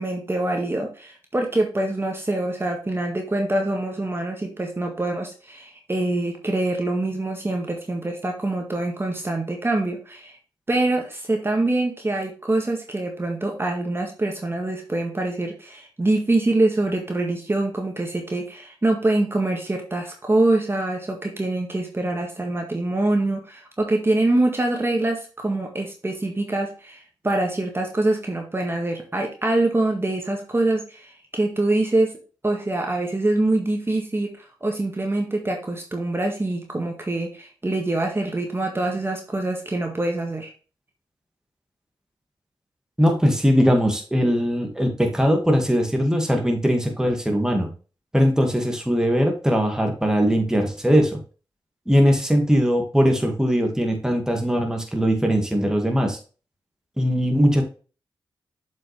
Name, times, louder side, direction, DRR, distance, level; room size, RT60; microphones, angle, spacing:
voice 1, 0.0-10.4 10.7-32.1 32.4-34.3 34.6-40.5, right 2 dB, 25° right, 2 dB, 1.8 m, -24 dB
voice 2, 43.0-47.7 48.1-51.2 51.9-56.2 57.0-57.6, equal, 5° right, 3 dB, 2.0 m, -20 dB
7.3 x 5.5 x 3.3 m, 0.36 s
cardioid pair, 50°, 9 cm